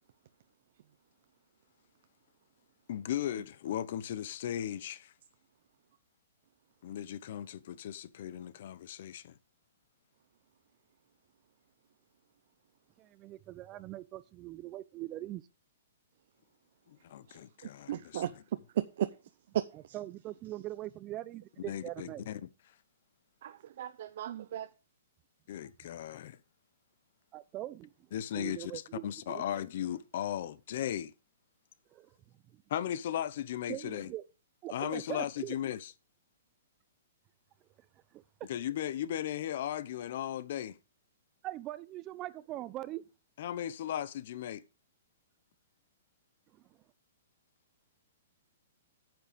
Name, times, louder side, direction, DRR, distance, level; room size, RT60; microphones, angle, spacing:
voice 1, 2.9-5.1 6.8-9.4 16.9-18.2 21.6-22.5 25.5-26.4 28.1-31.1 32.7-34.1 34.7-35.9 38.5-40.8 43.4-44.6, left 11 dB, 50° left, 0.8 m, -37 dB
voice 2, 13.0-15.4 19.9-22.2 27.3-27.9 28.3-29.4 31.9-32.1 32.5-32.6 33.7-34.2 34.6-35.5 38.1-38.5 41.4-43.0, right 15 dB, 25° right, 0.6 m, -42 dB
voice 3, 17.3-18.3 18.7-19.1 19.8-20.0 23.4-24.7, right 11 dB, 55° right, 0.8 m, -36 dB
9.1 x 7.7 x 5.1 m
hypercardioid pair, 160°, 0 cm